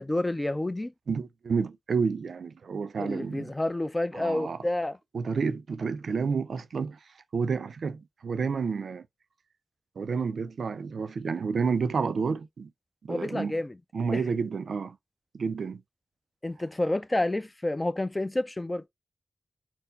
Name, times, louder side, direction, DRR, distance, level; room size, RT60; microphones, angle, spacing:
voice 1, 0.0-0.9 3.0-5.0 13.1-13.8 14.1-14.2 16.4-18.8, left 1 dB, 25° left, 0.5 m, -29 dB
voice 2, 1.1-3.5 4.1-4.6 5.1-7.0 7.3-9.0 10.0-12.7 13.0-13.6 13.9-15.0 15.3-15.8, right 5 dB, 85° right, 0.4 m, -30 dB
4.4 x 2.0 x 3.8 m
cardioid pair, 60°, 0 cm